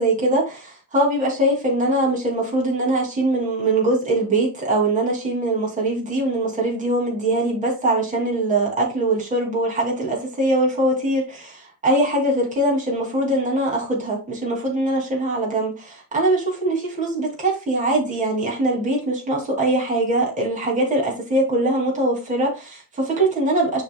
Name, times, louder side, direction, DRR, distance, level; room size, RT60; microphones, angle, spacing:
voice 1, 0.0-23.8, right 1 dB, 20° right, 2.6 m, -22 dB
11.0 x 4.1 x 2.3 m
cardioid pair, 110°, 36 cm